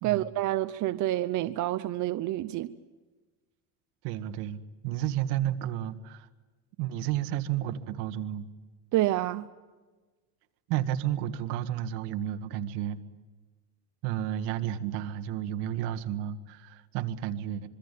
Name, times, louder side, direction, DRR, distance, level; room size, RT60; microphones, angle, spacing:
voice 1, 0.0-2.7 8.9-9.5, right 15 dB, 50° right, 0.9 m, -28 dB
voice 2, 4.0-6.3 6.8-8.5 10.7-13.0 14.0-17.7, right 11 dB, 75° right, 1.9 m, -32 dB
26.0 x 24.0 x 8.4 m
cardioid pair, 140°, 40 cm